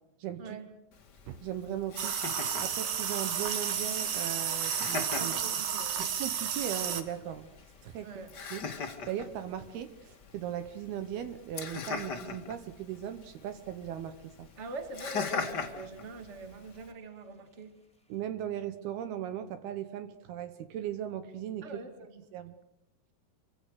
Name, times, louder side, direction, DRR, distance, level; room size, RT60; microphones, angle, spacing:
voice 1, 0.2-0.6 1.3-2.1 2.6-5.4 6.0-7.5 7.8-8.1 8.5-14.5 18.1-21.7 22.3-22.5, right 10 dB, 70° right, 2.8 m, -38 dB
Laughter, 0.9-16.9, left 5 dB, 40° left, 1.5 m, -42 dB
sound 1, 2.0-7.0, right 8 dB, 55° right, 2.6 m, -32 dB
sound 2, 2.5-11.1 11.4-12.0 12.3-12.6, left 1 dB, ahead, 2.5 m, -52 dB
voice 2, 5.1-6.0 8.0-8.3 14.6-17.7 21.6-22.2, right 3 dB, 20° right, 2.1 m, -43 dB
28.0 x 24.5 x 6.6 m
omnidirectional pair, 4.9 m